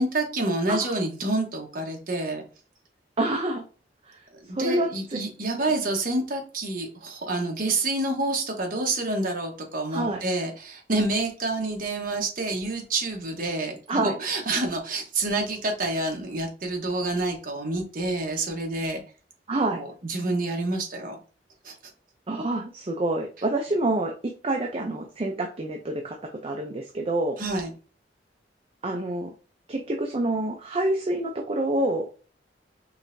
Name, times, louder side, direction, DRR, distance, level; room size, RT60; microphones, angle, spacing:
voice 1, 0.0-2.4 4.4-19.0 19.7-21.1 21.6-21.7 27.4-27.7, right 2 dB, 50° right, 2 dB, 1.1 m, -28 dB
voice 2, 3.2-3.6 4.0-4.2 4.5-5.2 5.6-5.7 9.9-10.2 13.9-14.1 19.5-19.8 22.3-27.4 28.8-29.3 29.7-32.1, right 2 dB, 35° right, 2 dB, 0.5 m, -27 dB
4.7 x 3.3 x 2.6 m, 0.36 s
head